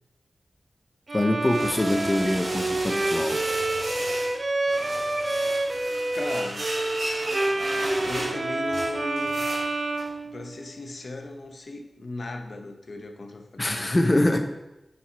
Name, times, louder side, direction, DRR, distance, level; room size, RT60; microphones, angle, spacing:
voice 1, 1.1-3.4 13.6-14.4, left 1 dB, 25° left, 4 dB, 0.6 m, -24 dB
Bowed string instrument, 1.1-10.9, right 2 dB, 45° right, 0.6 m, -28 dB
sound 1, 1.2-4.4 4.7-10.1, right 1 dB, 70° right, 2.7 m, -35 dB
voice 2, 6.1-6.7 7.8-9.5 10.2-14.0, left 2 dB, 60° left, 5 dB, 0.7 m, -37 dB
7.6 x 4.6 x 4.2 m, 0.93 s
wide cardioid pair, 105°, 0 cm